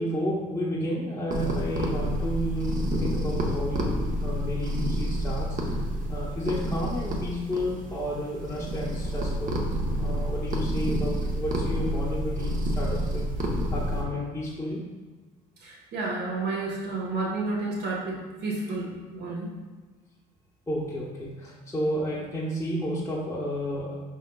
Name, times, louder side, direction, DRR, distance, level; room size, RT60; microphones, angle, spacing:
voice 1, 0.0-5.8 6.1-9.6 10.0-13.4 13.7-14.8 20.7-23.9, equal, 15° left, -7 dB, 0.8 m, -31 dB
sound 1, 1.3-14.0, equal, 45° right, 0.8 m, -29 dB
voice 2, 15.6-19.5, right 3 dB, 65° right, -3 dB, 1.3 m, -31 dB
5.1 x 3.7 x 2.3 m, 1.3 s
supercardioid pair, 75°, 19 cm